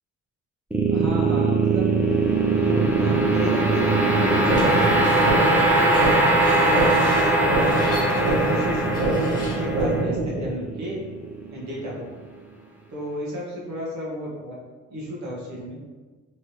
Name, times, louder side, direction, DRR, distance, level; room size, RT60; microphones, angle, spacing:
sound 1, 0.7-11.9, right 2 dB, 5° right, 0.5 m, -21 dB
voice 1, 0.9-1.9 2.5-6.1 6.5-8.8 9.1-11.0 11.5-12.0 12.9-14.5 14.9-15.8, equal, 65° right, -5 dB, 1.2 m, -33 dB
Screech, 4.5-9.8, equal, 15° left, 1.2 m, -40 dB
sound 2, 4.5-10.5, right 2 dB, 85° right, 0.9 m, -25 dB
4.4 x 3.0 x 3.2 m, 1.3 s
cardioid pair, 130°, 30 cm